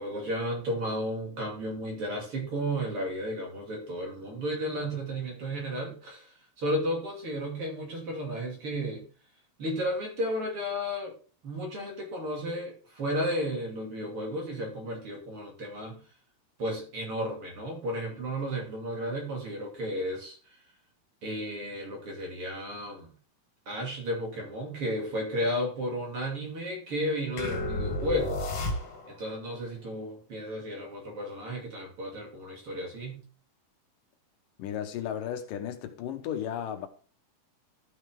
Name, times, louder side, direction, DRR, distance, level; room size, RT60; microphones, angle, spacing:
voice 1, 0.0-9.0 9.6-11.1 11.4-16.0 16.6-20.4 21.2-23.1 23.7-28.4 29.1-33.2, equal, 40° right, 3.2 m, -33 dB
sound 1, 27.4-29.3, left 2 dB, 60° left, 3.4 m, -32 dB
voice 2, 34.6-36.9, left 9 dB, 75° left, 2.6 m, -34 dB
13.0 x 6.3 x 3.6 m
omnidirectional pair, 3.9 m